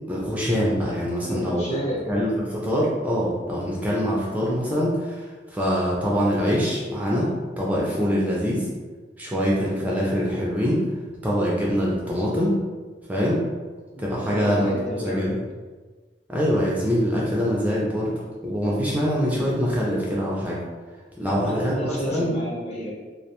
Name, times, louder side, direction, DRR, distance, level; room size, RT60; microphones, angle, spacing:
voice 1, 0.1-1.7 2.1-8.7 9.2-10.8 11.2-12.6 13.1-13.4 14.0-15.4 16.3-18.1 18.4-20.6 21.2-22.3, equal, 10° right, -5 dB, 0.3 m, -24 dB
voice 2, 1.3-2.2 13.9-15.3 21.2-22.9, equal, 35° left, -4 dB, 0.6 m, -31 dB
2.4 x 2.1 x 2.8 m, 1.4 s
head